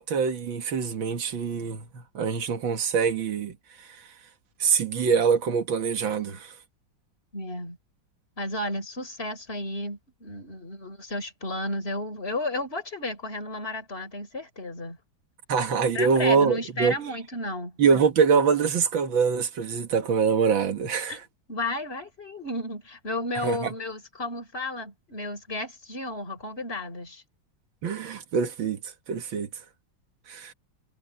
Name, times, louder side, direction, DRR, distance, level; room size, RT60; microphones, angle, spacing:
voice 1, 0.0-3.9 4.6-6.5 15.5-17.0 17.8-21.2 23.4-23.7 27.8-28.8 29.1-29.5 30.3-30.5, right 6 dB, 90° right, 2.3 m, -24 dB
voice 2, 7.3-7.8 8.4-15.0 15.9-17.8 21.1-21.2 21.5-27.2, left 1 dB, 30° left, 5.3 m, -33 dB
omnidirectional pair, 2.1 m